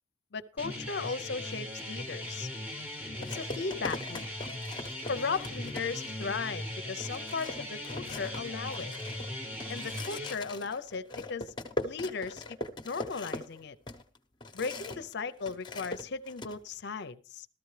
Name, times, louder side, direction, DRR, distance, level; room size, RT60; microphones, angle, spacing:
voice 1, 0.3-2.5 3.2-4.3 5.0-8.9 9.7-11.5 11.8-12.6 12.8-13.8 14.5-17.5, left 4 dB, 55° left, 12 dB, 0.6 m, -36 dB
sound 1, 0.6-10.4, left 1 dB, 10° right, 1.1 m, -39 dB
sound 2, 2.2-2.4 3.2-6.2 6.6-6.7 7.0-15.1 15.4-16.6, left 2 dB, 20° left, 0.9 m, -40 dB
14.0 x 13.5 x 3.2 m, 0.39 s
head